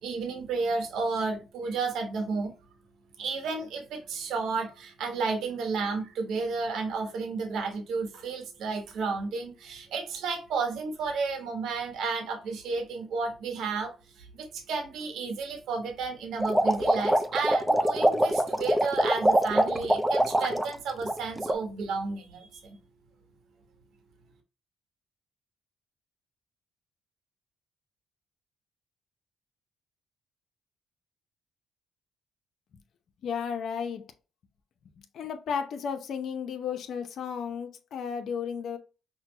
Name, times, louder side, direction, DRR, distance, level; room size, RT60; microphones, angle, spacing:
voice 1, 0.0-2.5 3.2-13.9 14.2-22.8, right 4 dB, 80° right, 1.2 m, -32 dB
sound 1, 16.4-20.7 21.0-21.5, right 1 dB, 5° right, 0.6 m, -24 dB
voice 2, 33.2-34.1 35.0-38.8, left 7 dB, 65° left, 0.7 m, -33 dB
5.7 x 2.3 x 2.9 m
cardioid pair, 90°, 0 cm